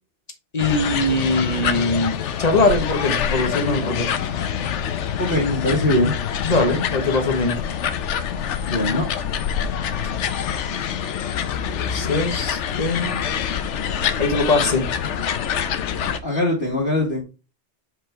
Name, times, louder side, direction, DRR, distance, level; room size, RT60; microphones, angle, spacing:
voice 1, 0.5-4.1 6.4-7.6 11.8-13.1 14.2-14.9, left 2 dB, 35° left, 5 dB, 1.4 m, -21 dB
sound 1, 0.6-16.2, left 8 dB, 90° left, 1.0 m, -25 dB
voice 2, 5.2-6.1 8.6-9.1 16.2-17.2, left 1 dB, 55° left, -4 dB, 1.8 m, -21 dB
6.3 x 4.9 x 3.5 m, 0.30 s
omnidirectional pair, 1.2 m